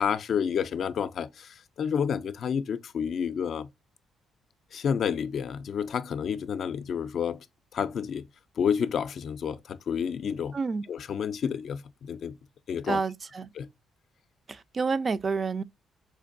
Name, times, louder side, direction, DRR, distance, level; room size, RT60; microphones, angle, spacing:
voice 1, 0.0-3.7 4.7-7.5 7.7-8.3 8.6-10.6 10.9-12.4 12.7-13.0 13.6-13.7, left 7 dB, 60° left, 0.3 m, -30 dB
voice 2, 10.5-10.8 12.9-13.5 14.5-15.6, right 4 dB, 40° right, 0.3 m, -29 dB
4.3 x 2.6 x 2.4 m
cardioid pair, 90°, 0 cm